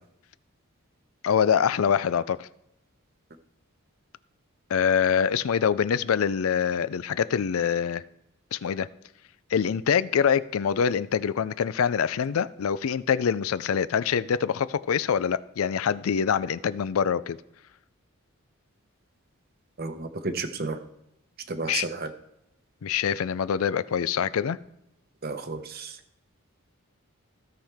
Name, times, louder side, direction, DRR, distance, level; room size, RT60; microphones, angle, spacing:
voice 1, 1.2-2.5 4.7-8.0 8.5-8.9 9.5-17.4 21.7-21.9 22.8-24.6, left 7 dB, 75° left, 17 dB, 0.4 m, -25 dB
voice 2, 19.8-20.8 21.5-22.1 25.2-26.0, right 3 dB, 45° right, 8 dB, 0.8 m, -32 dB
16.0 x 5.7 x 3.5 m, 0.82 s
head